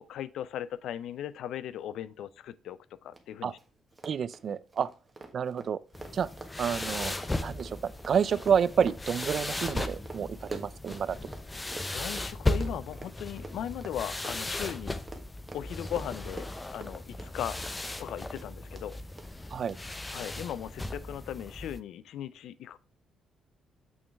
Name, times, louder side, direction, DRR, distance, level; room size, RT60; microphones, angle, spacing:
voice 1, 0.0-3.6 11.9-15.0 15.5-17.6 18.0-19.0 20.1-22.8, left 10 dB, 80° left, 0.4 m, -38 dB
Run, 3.1-3.2 3.5-3.6 3.9-11.4 11.7-18.1 18.3-18.8 19.2-19.3 19.7-19.8, right 2 dB, 20° right, 1.4 m, -45 dB
voice 2, 4.0-4.9 5.3-5.8 6.1-6.3 6.6-7.1 7.4-11.2 19.5-19.8, right 7 dB, 55° right, 0.4 m, -29 dB
sound 1, 5.9-21.8, left 2 dB, 15° left, 0.6 m, -36 dB
6.4 x 6.1 x 3.4 m
cardioid pair, 90°, 0 cm